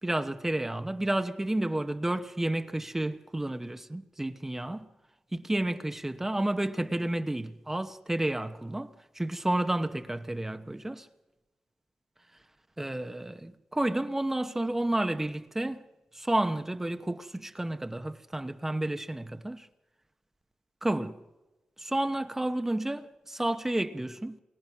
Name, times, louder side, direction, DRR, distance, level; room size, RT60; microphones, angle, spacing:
voice 1, 0.0-4.9 5.3-11.1 12.8-15.8 16.1-19.7 20.8-21.2 21.8-24.4, right 1 dB, 15° right, 1.0 m, -31 dB
29.0 x 24.0 x 6.1 m
cardioid pair, 85°, 2 cm